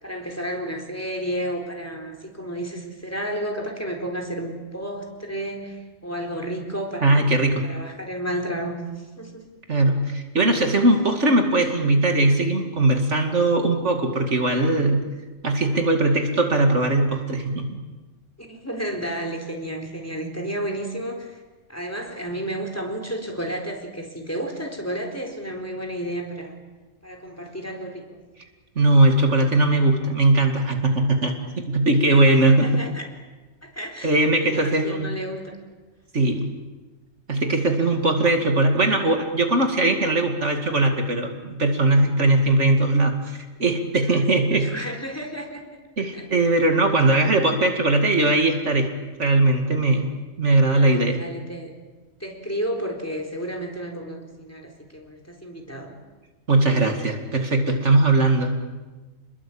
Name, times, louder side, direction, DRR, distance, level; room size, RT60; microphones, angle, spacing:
voice 1, 0.0-7.3 7.6-9.5 18.4-21.4 21.7-26.6 27.0-28.2 32.1-33.1 33.6-35.6 44.0-46.3 46.9-47.1 50.6-51.7 52.2-56.0, right 1 dB, 10° left, 3 dB, 4.3 m, -32 dB
voice 2, 7.0-7.6 9.7-15.1 15.4-17.7 28.8-31.4 31.7-32.8 34.0-35.1 36.1-36.5 37.3-44.7 46.0-48.9 49.2-51.2 56.5-58.6, right 2 dB, 60° right, 4 dB, 2.6 m, -20 dB
29.0 x 21.5 x 8.7 m, 1.2 s
omnidirectional pair, 1.3 m